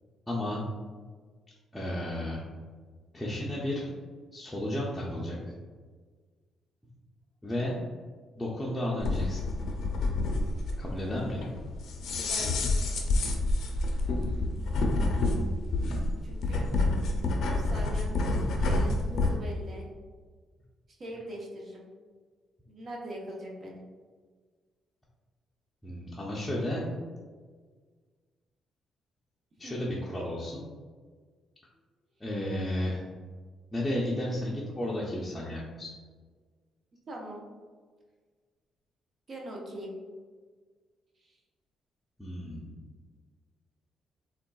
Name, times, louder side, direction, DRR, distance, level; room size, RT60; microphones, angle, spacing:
voice 1, 0.3-0.6 1.7-2.4 3.1-3.9 4.3-5.5 7.4-7.8 8.4-9.4 10.8-11.5 15.8-16.1 25.8-26.9 29.6-30.6 32.2-33.1 33.7-35.9 42.2-42.8, left 1 dB, 15° left, -5 dB, 0.5 m, -33 dB
sound 1, 9.0-19.4, left 2 dB, 75° left, 0.4 m, -28 dB
voice 2, 12.1-12.6 16.2-16.7 17.0-17.1 17.5-19.9 20.9-21.9 22.7-23.8 29.6-29.8 37.1-37.4 39.3-39.9 41.2-41.4, right 1 dB, 45° right, -1 dB, 0.6 m, -42 dB
3.6 x 2.3 x 2.3 m, 1.5 s
cardioid pair, 90°, 0 cm